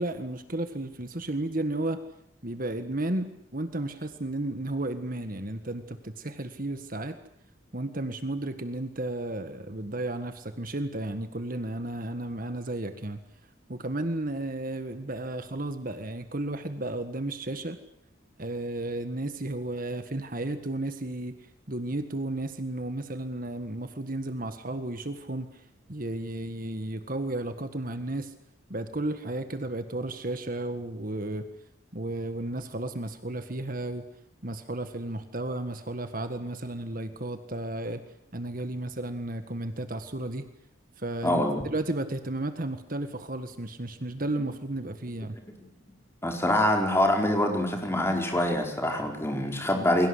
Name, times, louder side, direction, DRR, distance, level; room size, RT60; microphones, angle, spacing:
voice 1, 0.0-2.0 2.4-3.3 3.5-7.2 7.7-13.2 13.7-17.8 18.4-21.3 21.7-28.3 28.7-31.4 31.9-34.0 34.4-38.0 38.3-40.5 41.0-41.4 41.7-45.4, right 1 dB, 45° right, 9 dB, 1.7 m, -33 dB
voice 2, 41.2-41.6 46.2-50.1, left 1 dB, 10° left, 2 dB, 4.7 m, -25 dB
29.5 x 22.5 x 8.2 m, 0.73 s
head